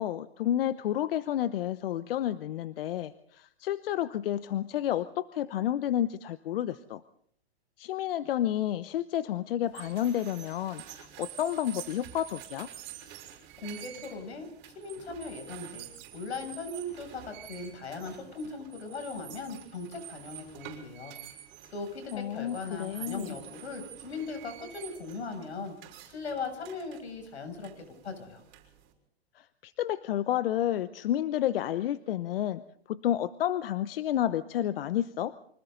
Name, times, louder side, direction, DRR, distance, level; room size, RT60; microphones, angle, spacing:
voice 1, 0.0-7.0 7.8-12.7 22.1-23.3 29.3-32.6 32.9-35.3, left 11 dB, 60° left, 13 dB, 1.0 m, -30 dB
sound 1, 9.7-28.9, right 12 dB, 35° right, 6.6 m, -48 dB
voice 2, 13.6-21.2 21.7-25.7 26.1-28.4, left 3 dB, 85° left, 6 dB, 7.6 m, -39 dB
29.0 x 25.0 x 4.0 m, 0.63 s
hypercardioid pair, 135°, 32 cm